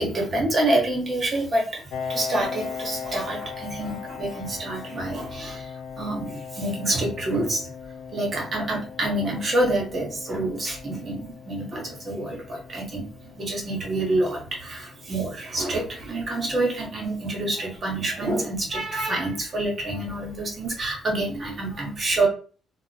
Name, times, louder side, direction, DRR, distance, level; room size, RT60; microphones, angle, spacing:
voice 1, 0.0-7.7 8.1-22.3, right 2 dB, 40° right, -1 dB, 1.2 m, -27 dB
Piano, 1.9-17.3, left 6 dB, 85° left, 0.3 m, -39 dB
2.4 x 2.2 x 2.7 m, 0.39 s
cardioid pair, 90°, 0 cm